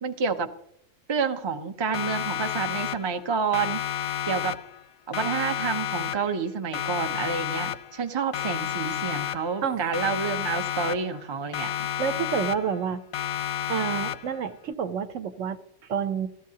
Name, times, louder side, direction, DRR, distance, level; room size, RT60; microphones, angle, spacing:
voice 1, 0.0-0.5 1.1-3.8 4.3-4.5 5.1-11.7, right 5 dB, 35° right, 7 dB, 0.4 m, -29 dB
Siren, 1.9-3.3 3.5-4.9 5.1-6.5 6.7-8.1 8.3-9.7 9.9-11.3 11.5-12.9 13.1-14.5, left 10 dB, 90° left, 1.0 m, -31 dB
voice 2, 12.0-13.0 13.7-15.6 15.9-16.3, right 7 dB, 70° right, 10 dB, 1.1 m, -28 dB
16.0 x 13.5 x 2.8 m, 0.73 s
omnidirectional pair, 1.4 m